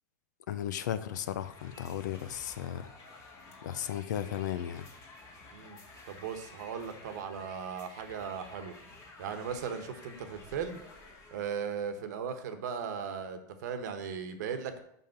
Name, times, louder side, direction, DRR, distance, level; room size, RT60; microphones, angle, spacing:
voice 1, 0.5-2.9 3.6-4.8, left 10 dB, 85° left, 13 dB, 0.6 m, -35 dB
sound 1, 1.2-11.6, left 3 dB, 30° left, 1.7 m, -52 dB
voice 2, 6.1-8.7 9.2-10.8 11.3-14.8, right 7 dB, 75° right, 8 dB, 1.1 m, -37 dB
5.5 x 5.1 x 5.7 m, 0.73 s
supercardioid pair, 135°, 10 cm